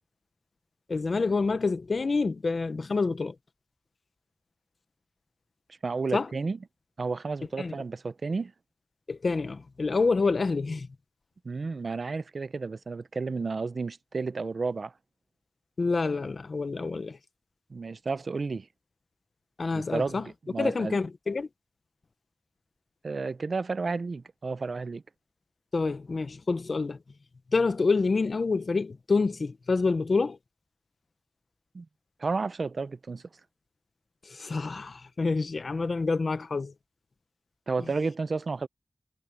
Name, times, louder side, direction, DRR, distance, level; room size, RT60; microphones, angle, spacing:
voice 1, 0.9-3.3 6.1-6.3 7.6-7.7 9.1-10.9 15.8-17.2 19.6-20.2 20.6-21.5 25.7-27.0 27.5-30.4 34.3-36.7, left 4 dB, 70° left, 1.1 m, -27 dB
voice 2, 5.8-6.6 7.0-8.5 11.4-14.9 17.7-18.7 19.7-21.0 23.0-25.0 31.7-31.9 32.2-33.2 37.7-38.7, right 4 dB, 75° right, 0.7 m, -32 dB
wide cardioid pair, 85°, 0 cm